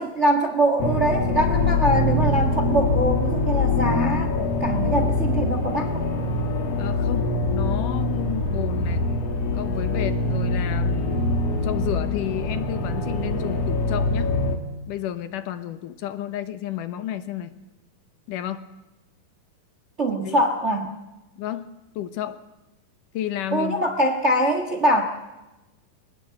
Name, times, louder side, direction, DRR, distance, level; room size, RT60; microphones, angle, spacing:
voice 1, 0.0-6.0 20.0-20.9 23.5-25.0, right 1 dB, 35° right, 5 dB, 1.1 m, -23 dB
sound 1, 0.8-14.6, left 2 dB, 50° left, 2.7 m, -24 dB
voice 2, 6.8-9.1 9.5-14.4 14.9-17.5 18.3-18.7 20.2-20.4 21.4-22.4 23.1-23.8, left 11 dB, 75° left, 12 dB, 2.5 m, -31 dB
22.5 x 20.0 x 7.8 m, 1.0 s
omnidirectional pair, 4.0 m